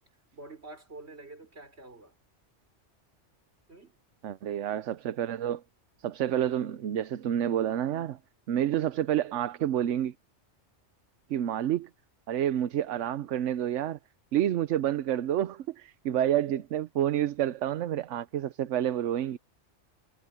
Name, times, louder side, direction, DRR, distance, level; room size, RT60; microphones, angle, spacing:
voice 1, 0.3-2.1 3.7-4.0, right 2 dB, 60° right, 4.9 m, -47 dB
voice 2, 4.2-5.6 6.0-8.2 8.5-10.1 11.3-11.9 12.3-14.0 14.3-19.4, right 11 dB, 80° right, 1.0 m, -29 dB
omnidirectional pair, 1.2 m